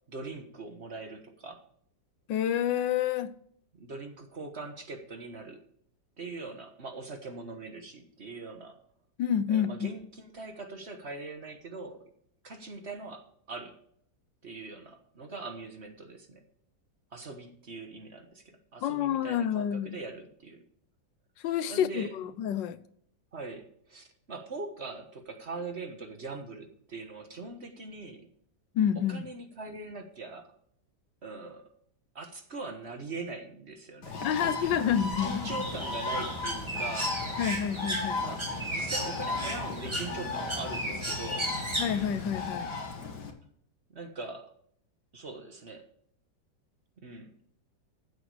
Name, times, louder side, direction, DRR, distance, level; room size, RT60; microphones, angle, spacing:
voice 1, 0.1-1.6 3.7-5.6 6.2-8.8 9.5-12.0 12.4-13.8 14.4-16.4 17.1-20.6 21.7-22.2 23.3-28.3 28.9-30.5 31.2-31.7 32.1-34.9 35.2-37.2 38.2-41.5 43.9-44.5 45.1-45.8 47.0-47.3, right 3 dB, 40° right, 1.5 m, -42 dB
voice 2, 2.3-3.3 9.2-9.9 18.8-20.0 21.4-22.8 28.7-29.2 34.2-35.4 37.4-38.2 41.8-42.7, left 9 dB, 85° left, 1.5 m, -28 dB
Bird, 34.0-43.3, left 4 dB, 65° left, 2.2 m, -36 dB
Bird 2, 34.4-42.5, right 1 dB, 15° right, 1.8 m, -36 dB
14.5 x 8.3 x 4.9 m
omnidirectional pair, 1.9 m